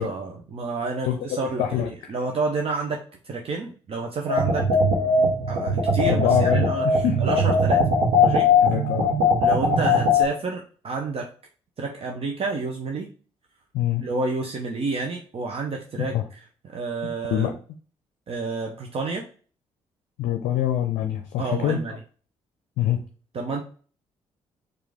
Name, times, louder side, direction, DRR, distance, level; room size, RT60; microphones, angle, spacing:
voice 1, 0.0-3.0 3.2-4.7 5.5-7.8 8.2-8.5 9.4-11.3 11.8-13.1 14.0-16.1 16.6-17.6 18.3-19.3 21.4-22.0 23.3-23.6, right 3 dB, 40° right, 1 dB, 0.7 m, -29 dB
voice 2, 1.6-1.9 6.1-7.2 8.6-9.1 13.7-14.0 16.0-16.3 17.3-17.5 20.2-21.8 22.8-23.0, left 10 dB, 60° left, 5 dB, 0.5 m, -24 dB
sound 1, 4.3-10.2, left 2 dB, 75° right, 1.1 m, -20 dB
4.6 x 2.5 x 3.4 m, 0.40 s
figure-of-eight pair, 40°, 15 cm